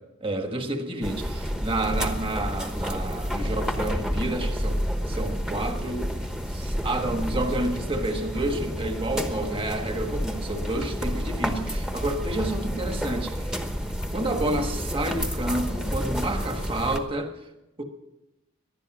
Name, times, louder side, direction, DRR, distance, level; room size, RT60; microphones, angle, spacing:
voice 1, 0.2-6.1 6.5-13.5 14.1-17.3 17.8-17.9, right 1 dB, 25° right, 5 dB, 1.5 m, -30 dB
sound 1, 1.0-17.0, equal, 5° right, 1.0 m, -30 dB
19.0 x 12.0 x 6.2 m, 0.94 s
head